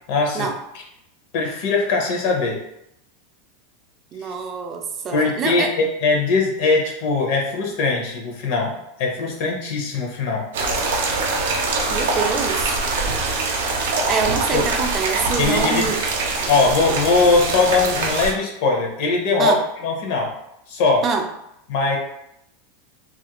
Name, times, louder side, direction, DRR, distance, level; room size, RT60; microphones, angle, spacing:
voice 1, 0.1-0.5 1.3-2.6 4.2-4.3 5.1-10.4 14.0-14.1 14.5-14.6 15.4-15.9 16.5-20.3 20.7-21.0 21.7-22.0, left 3 dB, 60° left, 1 dB, 0.6 m, -21 dB
voice 2, 4.1-5.7 11.9-12.8 14.1-16.0 19.4-19.6 21.0-21.3, right 5 dB, 25° right, 4 dB, 0.3 m, -25 dB
sound 1, 10.5-18.3, right 3 dB, 85° right, 0.5 m, -23 dB
2.4 x 2.1 x 2.9 m, 0.81 s
supercardioid pair, 145°, 0 cm